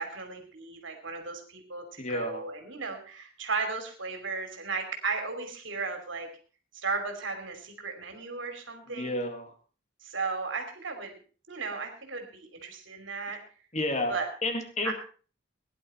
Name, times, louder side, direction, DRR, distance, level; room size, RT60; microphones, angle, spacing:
voice 1, 0.0-6.3 6.7-9.2 10.0-11.2 11.5-13.4 14.1-14.3 14.8-14.9, right 4 dB, 70° right, 5 dB, 3.0 m, -35 dB
voice 2, 2.0-2.4 8.9-9.5 13.7-14.9, left 1 dB, 35° left, 6 dB, 2.1 m, -31 dB
17.5 x 10.5 x 4.3 m, 0.39 s
head